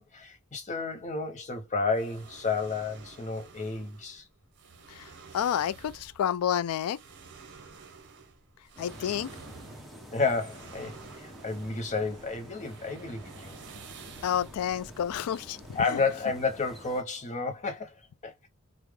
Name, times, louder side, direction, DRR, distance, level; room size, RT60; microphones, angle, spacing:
voice 1, 0.0-4.2 10.1-13.6 15.7-18.0 18.2-18.5, left 4 dB, 35° left, 0.6 m, -31 dB
sound 1, 1.9-15.8, right 4 dB, 55° right, 0.7 m, -51 dB
voice 2, 5.3-7.0 8.8-9.3 14.2-15.6, left 9 dB, 75° left, 0.3 m, -29 dB
sound 2, 8.8-17.0, equal, ahead, 0.7 m, -48 dB
3.2 x 2.0 x 3.4 m
head